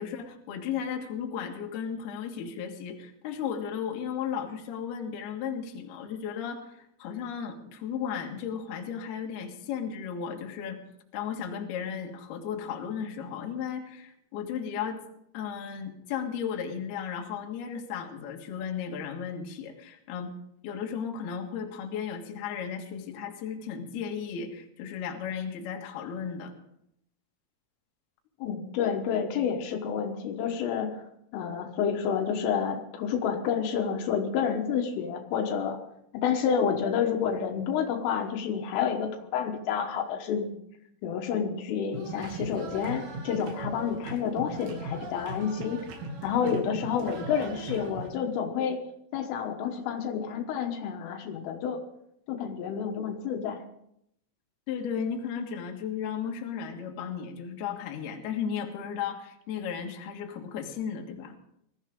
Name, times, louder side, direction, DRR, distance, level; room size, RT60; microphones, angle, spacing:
voice 1, 0.0-10.8 11.1-15.0 15.3-20.3 20.6-26.5 54.7-61.4, left 7 dB, 60° left, 2 dB, 3.2 m, -35 dB
voice 2, 28.4-31.0 31.3-35.8 36.1-40.6 41.0-45.8 46.2-48.8 49.1-51.8 52.3-53.6, left 7 dB, 80° left, 4 dB, 3.8 m, -29 dB
sound 1, 41.9-48.1, right 2 dB, 70° right, 4.8 m, -39 dB
21.5 x 14.5 x 3.7 m, 0.76 s
omnidirectional pair, 5.9 m